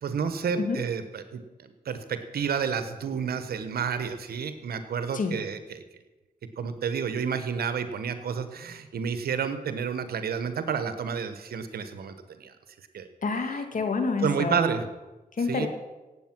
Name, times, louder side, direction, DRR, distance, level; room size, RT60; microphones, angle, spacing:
voice 1, 0.0-5.8 6.6-12.5 12.9-13.1 14.2-14.9 15.5-15.7, right 6 dB, 85° right, 10 dB, 1.2 m, -30 dB
voice 2, 13.2-14.7 15.4-15.7, left 4 dB, 60° left, 6 dB, 2.3 m, -28 dB
17.0 x 8.1 x 6.1 m, 1.1 s
cardioid pair, 50°, 16 cm